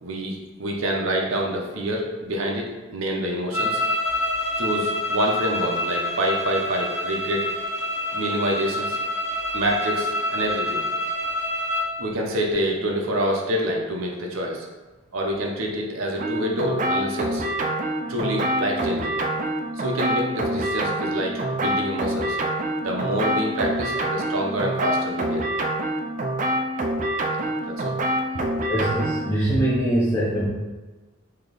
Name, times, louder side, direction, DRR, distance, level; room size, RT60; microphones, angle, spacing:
voice 1, 0.0-3.8 4.6-7.5 8.1-9.0 9.5-10.8 12.0-14.7 15.1-17.4 18.1-19.2 19.8-22.4 22.8-25.5 27.4-28.0 28.3-28.5 28.8-28.9, equal, 75° right, 0 dB, 0.6 m, -27 dB
sound 1, 3.5-11.9, left 1 dB, 70° left, 1.4 m, -27 dB
sound 2, 16.2-29.4, right 1 dB, 40° right, 0.3 m, -26 dB
voice 2, 28.7-30.4, right 1 dB, 15° left, -9 dB, 0.6 m, -22 dB
3.3 x 2.8 x 3.8 m, 1.2 s
head